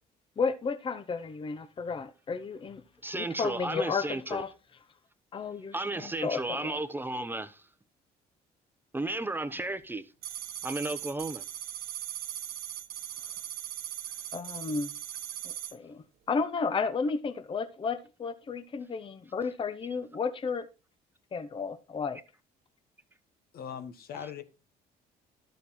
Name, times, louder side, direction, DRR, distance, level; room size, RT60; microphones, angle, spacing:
voice 1, 0.4-2.8 3.1-4.5 5.3-6.8 14.3-14.9 15.4-20.7 21.3-22.2, left 5 dB, 30° left, 0.8 m, -33 dB
voice 2, 3.0-4.4 5.7-7.6 8.9-10.0 10.6-11.4 24.1-24.3, right 2 dB, 10° right, 0.8 m, -34 dB
sound 1, 10.2-15.7, right 12 dB, 65° right, 1.1 m, -39 dB
voice 3, 23.5-24.6, left 8 dB, 65° left, 1.4 m, -40 dB
12.0 x 6.8 x 4.2 m
cardioid pair, 110°, 17 cm